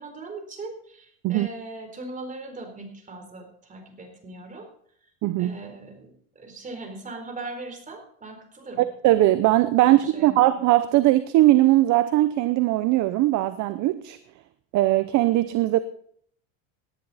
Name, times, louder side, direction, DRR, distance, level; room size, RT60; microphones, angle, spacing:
voice 1, 0.0-4.7 5.4-8.8 9.8-10.4, right 3 dB, 20° right, 4 dB, 4.0 m, -39 dB
voice 2, 5.2-5.5 8.8-14.2 14.7-15.8, right 15 dB, 45° right, 13 dB, 0.8 m, -20 dB
18.0 x 10.5 x 4.2 m, 0.64 s
supercardioid pair, 130°, 40 cm